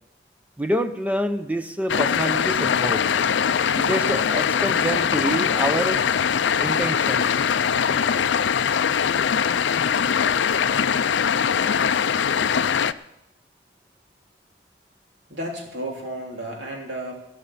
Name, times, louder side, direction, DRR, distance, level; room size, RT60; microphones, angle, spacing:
voice 1, 0.6-3.1 3.7-6.0 6.6-7.4, right 1 dB, 10° right, 9 dB, 0.7 m, -27 dB
sound 1, 1.9-12.9, left 7 dB, 65° left, 0.4 m, -22 dB
voice 2, 15.3-17.1, right 1 dB, 60° right, 0 dB, 3.3 m, -33 dB
17.5 x 6.4 x 8.4 m, 0.87 s
head